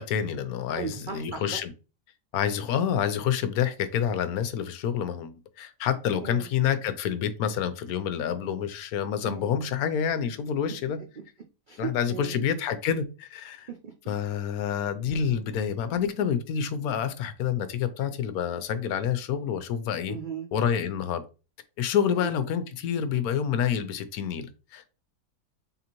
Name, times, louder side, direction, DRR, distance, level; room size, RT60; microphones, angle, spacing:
voice 1, 0.0-1.7 2.3-11.0 11.8-13.7 14.1-20.2 20.5-21.2 21.8-25.0, left 8 dB, 75° left, 1.0 m, -28 dB
voice 2, 0.8-1.6 6.2-6.5 9.2-9.6 11.7-12.4 13.7-14.1 20.1-20.5 22.0-22.3, right 6 dB, 80° right, 0.4 m, -37 dB
3.8 x 3.7 x 2.9 m
omnidirectional pair, 1.6 m